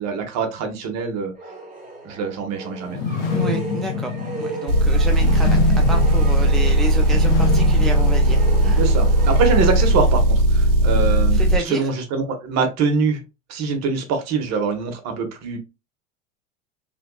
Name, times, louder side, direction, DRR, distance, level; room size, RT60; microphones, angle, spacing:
voice 1, 0.0-1.3 2.0-3.0 8.8-13.2 13.5-15.6, right 5 dB, 45° right, 1.4 m, -24 dB
sound 1, 1.4-10.5, right 2 dB, 20° right, 1.5 m, -35 dB
sound 2, 2.9-8.9, left 5 dB, 65° left, 1.1 m, -26 dB
voice 2, 3.3-5.6 5.9-8.8 11.3-11.9, equal, ahead, 0.4 m, -30 dB
Motor vehicle (road) / Engine, 4.7-11.6, right 1 dB, 70° right, 1.3 m, -17 dB
3.6 x 3.4 x 2.3 m
hypercardioid pair, 90°, 38 cm